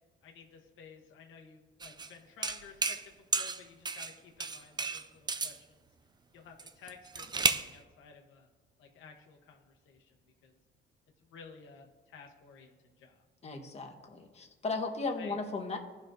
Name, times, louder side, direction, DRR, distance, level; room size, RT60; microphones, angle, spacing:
voice 1, 0.2-5.8 6.3-8.5 8.8-10.1 10.4-10.6 11.3-13.2 15.2-15.4, left 6 dB, 85° left, 2 dB, 1.0 m, -54 dB
sound 1, 1.8-2.1 2.4-3.1 3.3-4.1 4.4-5.6 6.6-7.7, right 4 dB, 20° right, 0.4 m, -32 dB
voice 2, 13.4-15.8, left 3 dB, 35° left, 2 dB, 1.2 m, -36 dB
15.0 x 5.3 x 2.6 m, 1.3 s
cardioid pair, 90°, 20 cm